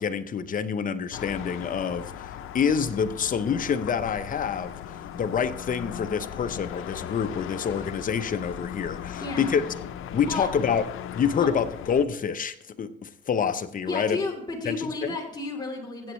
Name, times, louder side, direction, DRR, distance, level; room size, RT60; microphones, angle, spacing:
voice 1, 0.0-4.7 5.1-9.6 10.1-10.8 11.1-14.2 14.6-15.1, left 7 dB, 40° left, 10 dB, 0.7 m, -27 dB
sound 1, 1.1-12.1, left 10 dB, 75° left, 0.7 m, -38 dB
voice 2, 9.1-9.7 10.2-10.5 11.3-11.5 13.8-16.1, left 3 dB, 20° left, -2 dB, 3.1 m, -32 dB
15.5 x 8.0 x 3.1 m, 0.76 s
cardioid pair, 95°, 21 cm